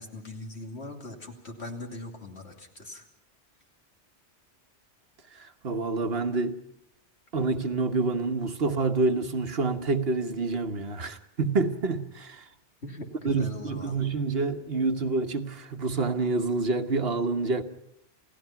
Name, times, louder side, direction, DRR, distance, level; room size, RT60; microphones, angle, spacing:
voice 1, 0.0-3.1 12.8-14.0, left 2 dB, 65° left, 3.1 m, -41 dB
voice 2, 5.3-6.6 7.3-12.4 13.2-17.6, right 3 dB, 60° right, 1.4 m, -27 dB
29.0 x 16.5 x 5.9 m
omnidirectional pair, 1.2 m